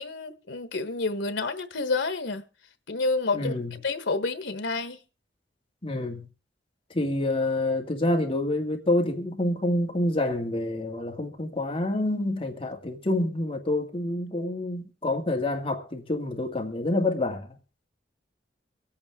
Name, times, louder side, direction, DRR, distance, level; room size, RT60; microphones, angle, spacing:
voice 1, 0.0-2.4 2.9-3.5 3.8-5.0, left 3 dB, 90° left, 1.1 m, -29 dB
voice 2, 3.3-3.7 5.8-6.3 6.9-17.6, left 1 dB, 30° left, 2.1 m, -27 dB
25.0 x 8.6 x 3.5 m
head